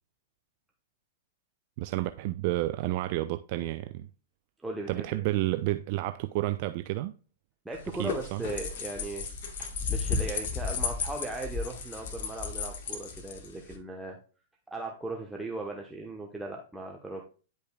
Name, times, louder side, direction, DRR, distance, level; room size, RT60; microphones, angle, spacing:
voice 1, 1.8-4.1 4.9-7.1 8.0-8.4, right 16 dB, 45° right, 0.4 m, -30 dB
voice 2, 4.6-5.0 7.6-9.3 9.9-14.2 14.7-17.2, right 2 dB, 5° right, 1.0 m, -38 dB
sound 1, 7.7-13.8, left 5 dB, 55° left, 1.4 m, -34 dB
10.0 x 5.3 x 2.3 m
figure-of-eight pair, 105°, 0 cm